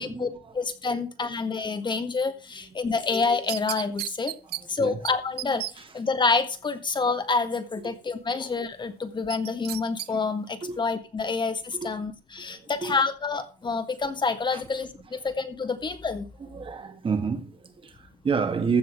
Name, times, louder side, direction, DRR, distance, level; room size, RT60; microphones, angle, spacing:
voice 1, 0.0-0.5 0.9-1.0 4.5-5.0 5.4-5.9 7.8-7.9 10.6-10.8 11.7-11.9 12.4-13.0 14.5-14.6 16.4-18.8, right 5 dB, 30° right, 2.0 m, -30 dB
voice 2, 0.5-4.3 4.7-16.3, left 4 dB, 25° left, 1.5 m, -28 dB
sound 1, 3.1-4.6 5.0-5.1 5.4-5.7 9.3-10.1 10.5-10.6, right 16 dB, 70° right, 0.5 m, -33 dB
15.0 x 5.6 x 6.5 m
cardioid pair, 110°, 17 cm